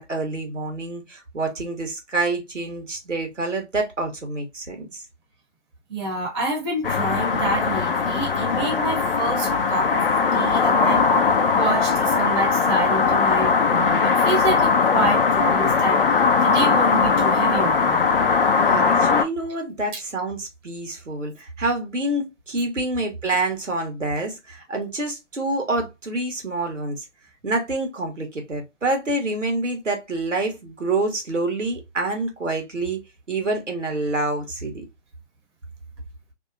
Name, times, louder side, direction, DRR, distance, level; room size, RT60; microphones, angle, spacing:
voice 1, 0.0-5.0 18.6-27.0 27.4-33.0 33.3-34.8, right 2 dB, 90° right, 1.2 m, -27 dB
voice 2, 5.9-10.0 10.3-11.0 11.5-16.0 16.4-18.1, right 2 dB, 20° right, 0.9 m, -27 dB
sound 1, 6.8-19.2, left 5 dB, 50° left, 0.4 m, -20 dB
2.7 x 2.3 x 2.5 m
figure-of-eight pair, 140°, 36 cm